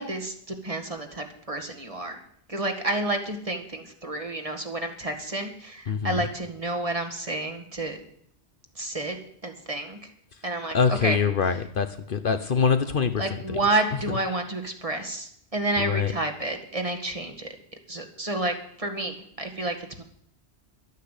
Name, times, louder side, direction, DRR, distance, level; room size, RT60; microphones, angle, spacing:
voice 1, 0.0-2.2 2.5-8.0 8.8-9.2 9.4-10.1 10.4-11.2 13.2-17.5 17.9-20.0, right 2 dB, 30° right, 5 dB, 1.8 m, -30 dB
voice 2, 5.9-6.2 10.7-13.2 13.5-13.6 15.8-16.1, left 6 dB, 55° left, 10 dB, 0.9 m, -24 dB
12.0 x 9.4 x 8.3 m, 0.66 s
omnidirectional pair, 1.1 m